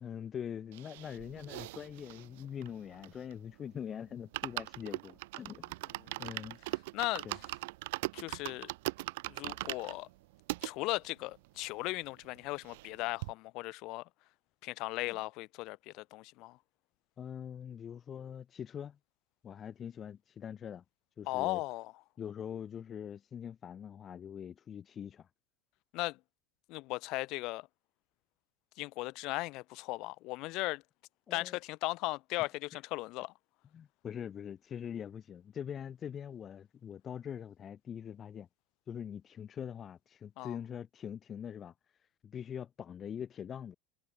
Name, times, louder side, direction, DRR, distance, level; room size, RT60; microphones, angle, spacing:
voice 1, 0.0-5.8 6.2-6.6 7.2-7.4 15.1-15.2 17.2-19.0 19.4-20.8 21.2-21.6 22.2-25.3 31.3-31.6 32.4-32.8 33.7-38.5 38.9-41.7 42.2-43.7, left 8 dB, 30° left, 6.3 m, -43 dB
sound 1, 0.7-3.5 3.8-3.9 4.2-10.7 11.3-11.4 11.6-11.7 12.0-12.9 13.2-13.3, right 21 dB, 75° right, 1.7 m, -40 dB
voice 2, 6.9-7.2 8.1-8.7 9.3-10.1 10.6-14.0 14.6-16.6 21.3-21.9 25.9-26.2 26.7-27.7 28.8-30.8 31.3-33.3 40.4-40.6, left 22 dB, 55° left, 7.3 m, -37 dB
supercardioid pair, 115°, 0 cm